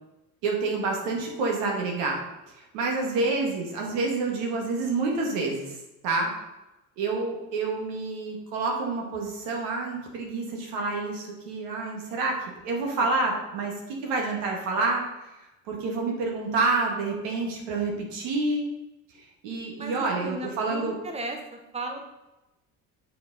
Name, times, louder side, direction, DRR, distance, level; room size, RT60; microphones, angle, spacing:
voice 1, 0.4-2.2 2.6-5.7 6.0-6.3 7.0-15.3 15.7-18.7 19.2-21.0, right 3 dB, 80° right, 0 dB, 1.7 m, -28 dB
voice 2, 19.8-22.0, right 2 dB, 15° right, 2 dB, 1.1 m, -36 dB
6.6 x 4.7 x 3.9 m, 0.97 s
supercardioid pair, 75°, 41 cm